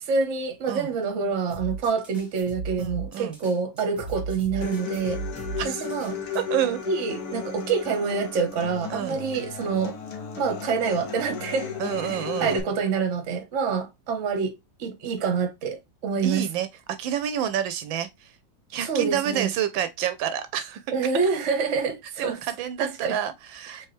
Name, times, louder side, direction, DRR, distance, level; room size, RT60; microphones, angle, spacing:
voice 1, 0.0-5.2 5.6-6.4 6.6-10.0 10.4-11.7 12.0-16.4 18.8-19.5 20.9-22.4 22.8-23.2 23.8-23.9, right 5 dB, 45° right, 1.1 m, -27 dB
sound 1, 1.5-6.4, right 4 dB, ahead, 1.3 m, -36 dB
voice 2, 2.8-3.4 5.6-5.8 6.3-6.8 8.9-9.2 11.8-12.6 16.2-16.7 17.0-18.3 18.7-20.8 22.2-23.9, right 10 dB, 80° right, 1.3 m, -28 dB
Human voice / Acoustic guitar, 4.6-12.6, left 6 dB, 55° left, 1.3 m, -35 dB
4.5 x 3.3 x 3.0 m
omnidirectional pair, 2.1 m